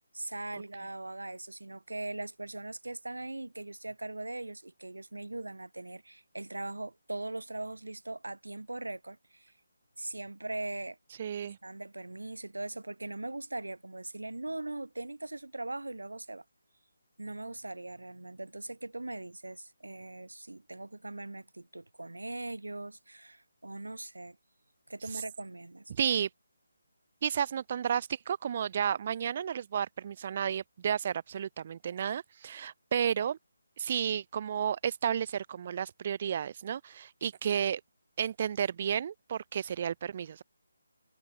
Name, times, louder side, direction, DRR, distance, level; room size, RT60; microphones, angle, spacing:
voice 1, 0.1-9.5 10.0-11.0 11.6-16.4 17.2-24.4 24.9-25.9, right 2 dB, 70° right, 0.9 m, -40 dB
voice 2, 11.2-11.6 25.1-25.2 25.9-26.3 27.2-33.4 33.8-37.8 38.2-40.4, right 8 dB, 35° right, 0.3 m, -32 dB
figure-of-eight pair, 150°, 0 cm